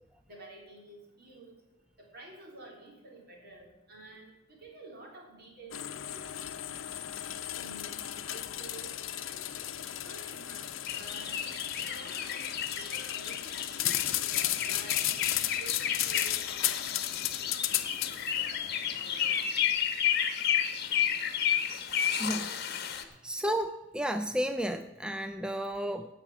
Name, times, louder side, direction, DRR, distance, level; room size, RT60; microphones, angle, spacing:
voice 1, 0.3-1.6 2.0-6.3 6.5-6.9 7.5-9.5 9.7-11.4 11.8-18.7 19.0-19.4, right 2 dB, 55° right, -1 dB, 3.4 m, -51 dB
sound 1, 5.7-19.0, left 13 dB, 85° left, 0.7 m, -35 dB
sound 2, 10.9-23.0, left 9 dB, 55° left, 1.0 m, -32 dB
voice 2, 22.2-22.5 22.8-26.1, equal, 5° right, 9 dB, 0.3 m, -33 dB
16.0 x 5.8 x 7.1 m, 1.1 s
head